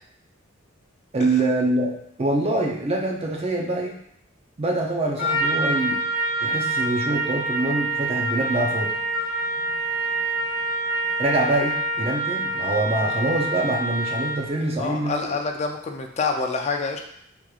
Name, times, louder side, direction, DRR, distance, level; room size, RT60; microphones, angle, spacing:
voice 1, 1.1-1.9 2.2-3.9 4.6-6.0 6.4-8.9 11.2-15.2, right 2 dB, 30° right, 1 dB, 0.5 m, -24 dB
Trumpet, 5.2-14.5, right 2 dB, 75° left, 1.0 m, -26 dB
voice 2, 14.8-17.0, left 4 dB, 35° left, 3 dB, 0.3 m, -27 dB
3.5 x 3.0 x 2.3 m, 0.69 s
head